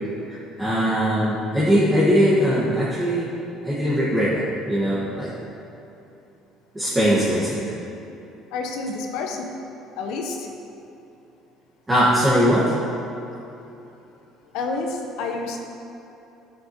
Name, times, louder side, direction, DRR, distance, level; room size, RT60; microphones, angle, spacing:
voice 1, 0.3-3.3 3.6-5.3 6.7-7.6 11.9-12.8, equal, 10° right, -10 dB, 1.5 m, -20 dB
voice 2, 8.5-9.5 10.0-10.5 14.5-15.6, left 3 dB, 75° left, 2 dB, 1.0 m, -29 dB
13.0 x 7.7 x 3.0 m, 2.9 s
cardioid pair, 160°, 0 cm